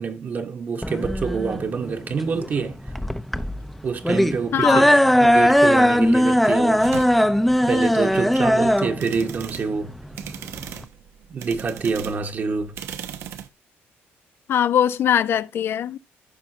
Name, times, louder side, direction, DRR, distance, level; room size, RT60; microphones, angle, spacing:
voice 1, 0.0-2.8 3.8-4.8 5.2-6.8 7.6-9.9 11.3-12.8, right 5 dB, 45° right, 1.4 m, -26 dB
sound 1, 0.8-10.8, equal, ahead, 0.7 m, -19 dB
voice 2, 4.5-4.8 14.5-16.0, left 9 dB, 60° left, 0.5 m, -21 dB
sound 2, 6.8-13.5, right 9 dB, 75° right, 1.0 m, -38 dB
14.0 x 5.6 x 2.8 m
cardioid pair, 115°, 5 cm